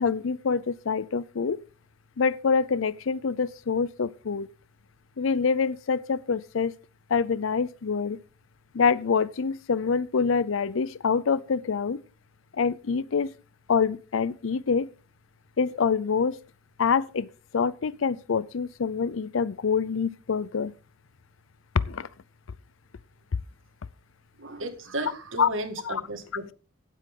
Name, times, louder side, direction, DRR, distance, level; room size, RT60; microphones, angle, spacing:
voice 1, 0.0-1.6 2.2-4.5 5.2-6.8 7.1-8.2 8.7-12.0 12.5-13.3 13.7-14.9 15.6-16.4 16.8-17.3 17.5-20.7 21.7-22.1 25.4-25.5 25.8-26.0, left 5 dB, 70° left, 0.5 m, -26 dB
voice 2, 24.4-26.5, right 1 dB, 70° right, 2.2 m, -34 dB
15.5 x 8.5 x 3.8 m
head